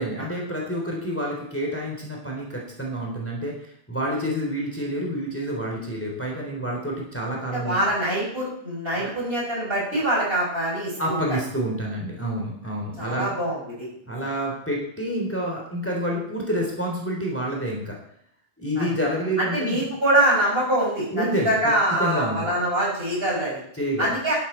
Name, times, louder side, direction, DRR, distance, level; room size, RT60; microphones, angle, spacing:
voice 1, 0.0-7.8 8.9-9.1 11.0-13.3 14.0-17.9 18.6-19.9 21.1-21.5 22.0-22.5 23.7-24.1, equal, 10° left, -1 dB, 3.5 m, -28 dB
voice 2, 7.5-11.4 13.0-13.9 18.8-18.9 19.4-23.6 24.0-24.3, right 1 dB, 65° right, -5 dB, 6.9 m, -24 dB
12.0 x 11.5 x 4.5 m, 0.70 s
omnidirectional pair, 1.1 m